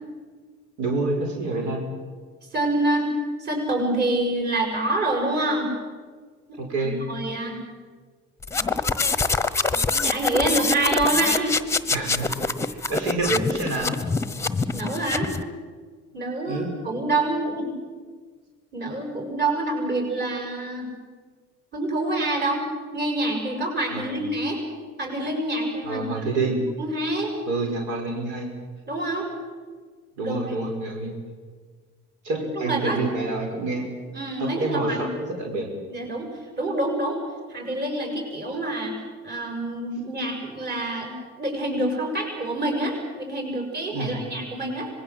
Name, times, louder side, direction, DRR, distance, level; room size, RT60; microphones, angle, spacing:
voice 1, 0.8-1.9 6.6-7.0 11.9-14.0 16.5-16.7 23.9-24.2 25.8-26.6 27.5-28.5 30.2-31.1 32.2-33.9 34.4-35.7 43.9-44.2, right 2 dB, 80° right, 2 dB, 5.3 m, -28 dB
voice 2, 2.5-3.1 3.4-5.7 6.8-7.6 10.0-11.5 14.7-15.3 16.1-17.7 18.7-20.9 21.7-22.6 22.9-24.6 25.0-26.3 26.8-27.3 28.9-29.3 30.2-30.4 32.3-33.4 34.1-35.0 35.9-36.3 36.6-37.2 37.5-39.0 39.2-44.9, right 2 dB, 35° right, 2 dB, 6.9 m, -26 dB
sound 1, 8.4-15.4, left 4 dB, 10° left, 1.0 m, -25 dB
25.5 x 21.5 x 7.9 m, 1.5 s
cardioid pair, 135°, 30 cm